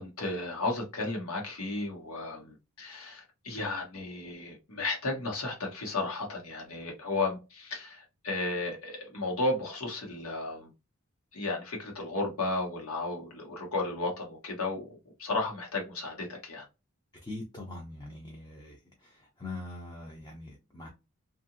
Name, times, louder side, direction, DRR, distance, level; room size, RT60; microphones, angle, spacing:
voice 1, 0.0-10.7 11.3-16.6, left 2 dB, 75° left, 1.2 m, -34 dB
voice 2, 17.2-20.9, left 2 dB, 20° left, 0.5 m, -43 dB
2.8 x 2.5 x 2.5 m
head